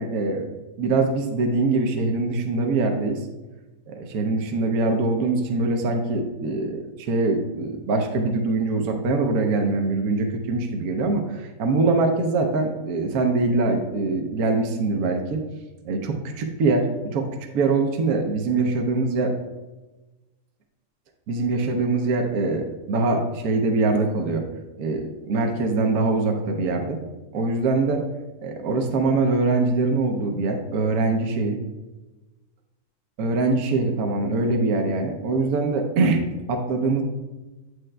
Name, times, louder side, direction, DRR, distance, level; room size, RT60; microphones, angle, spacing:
voice 1, 0.0-3.2 3.9-15.4 15.9-17.3 17.5-19.3 21.3-24.4 24.8-27.0 27.3-28.0 28.4-31.6 33.2-36.2 36.5-37.0, right 3 dB, 75° right, 4 dB, 1.2 m, -23 dB
8.6 x 6.3 x 2.2 m, 1.1 s
omnidirectional pair, 1.6 m